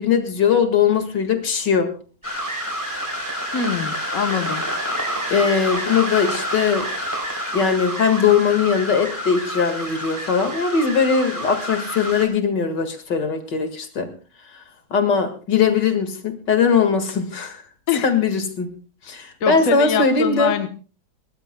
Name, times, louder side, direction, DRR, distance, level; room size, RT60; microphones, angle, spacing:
voice 1, 0.0-1.9 5.3-6.9 7.5-14.1 14.9-17.6 18.0-18.7 19.1-20.6, left 6 dB, 70° left, 7 dB, 2.6 m, -20 dB
sound 1, 2.2-12.3, equal, 10° right, 4.1 m, -28 dB
voice 2, 3.5-4.7 17.9-18.1 19.4-20.7, left 6 dB, 50° left, 7 dB, 1.4 m, -23 dB
22.0 x 19.5 x 2.2 m, 0.38 s
omnidirectional pair, 1.9 m